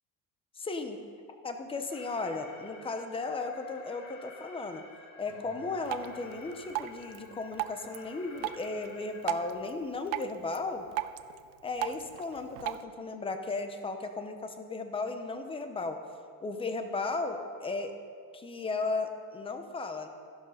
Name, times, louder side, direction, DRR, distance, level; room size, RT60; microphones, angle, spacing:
voice 1, 0.6-1.0 1.3-4.8 5.2-10.8 11.6-16.0 16.4-17.9 18.3-20.1, left 3 dB, 15° left, 7 dB, 0.7 m, -35 dB
Alarm, 1.9-9.5, left 4 dB, 45° left, 1.8 m, -52 dB
Acoustic guitar / Strum, 5.3-8.6, right 1 dB, 25° right, 2.3 m, -60 dB
Drip, 5.8-12.8, right 16 dB, 80° right, 0.7 m, -39 dB
14.0 x 11.5 x 5.6 m, 2.2 s
cardioid pair, 170°, 44 cm